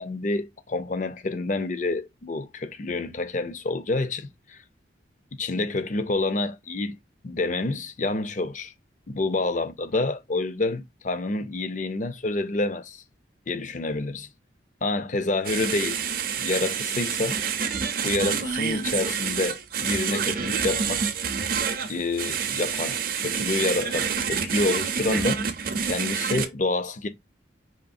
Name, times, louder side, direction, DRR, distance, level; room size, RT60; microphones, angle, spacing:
voice 1, 0.0-4.6 5.3-7.0 7.2-8.7 9.1-13.0 13.5-14.3 14.8-16.0 16.4-17.4 18.0-21.1 21.9-25.4 25.8-27.1, left 2 dB, 40° left, 0.6 m, -28 dB
sound 1, 15.4-26.5, right 6 dB, 50° right, 0.6 m, -28 dB
5.1 x 3.0 x 2.5 m
head